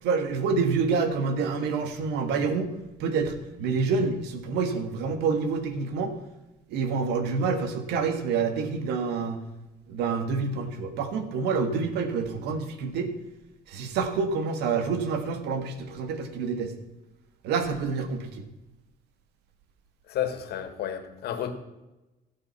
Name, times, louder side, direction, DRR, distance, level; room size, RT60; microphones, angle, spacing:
voice 1, 0.0-2.7 3.0-6.1 6.7-9.4 9.9-13.1 13.7-16.7 17.4-18.4, right 5 dB, 85° right, 8 dB, 1.9 m, -27 dB
voice 2, 20.1-21.5, left 10 dB, 70° left, 9 dB, 2.0 m, -31 dB
17.0 x 7.7 x 5.7 m, 1.0 s
cardioid pair, 110°, 17 cm